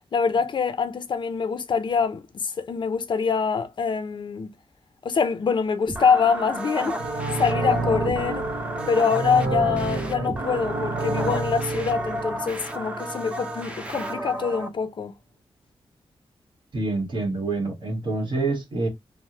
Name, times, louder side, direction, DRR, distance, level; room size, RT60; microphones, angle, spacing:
voice 1, 0.1-4.5 5.0-7.0 7.4-8.5 8.9-15.1, left 6 dB, 50° left, 0.4 m, -24 dB
sound 1, 5.9-14.7, right 1 dB, 10° right, 0.5 m, -33 dB
sound 2, 6.9-13.7 14.0-14.1, right 3 dB, 80° right, 0.9 m, -30 dB
voice 2, 16.7-18.9, right 3 dB, 50° right, 1.3 m, -26 dB
3.2 x 2.0 x 2.8 m
wide cardioid pair, 155°, 10 cm